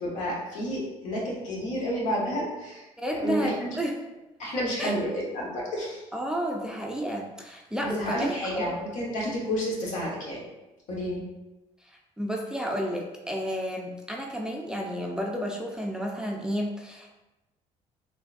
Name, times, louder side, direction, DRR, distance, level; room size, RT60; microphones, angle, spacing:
voice 1, 0.0-2.9 3.1-3.7 4.4-6.0 7.8-10.4 10.9-11.2, equal, 70° left, -3 dB, 1.2 m, -30 dB
voice 2, 3.0-3.9 4.8-4.9 6.1-8.8 12.2-17.2, equal, 5° right, 0 dB, 0.4 m, -31 dB
3.7 x 3.1 x 2.5 m, 1.0 s
cardioid pair, 100°, 13 cm